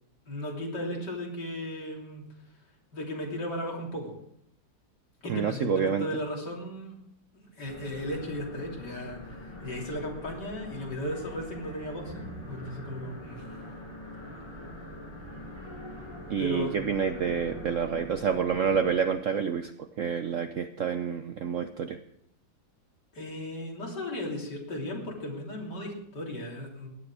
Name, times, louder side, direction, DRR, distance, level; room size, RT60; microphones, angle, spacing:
voice 1, 0.3-2.2 2.9-4.1 5.2-6.9 7.6-12.1 12.5-13.4 16.4-16.7 23.1-26.9, left 1 dB, 60° left, -1 dB, 3.8 m, -35 dB
voice 2, 5.3-6.1 16.3-22.0, right 7 dB, 65° right, 8 dB, 0.8 m, -28 dB
sound 1, 7.6-18.9, left 1 dB, 15° left, 7.4 m, -43 dB
17.0 x 11.0 x 4.8 m, 0.75 s
omnidirectional pair, 2.0 m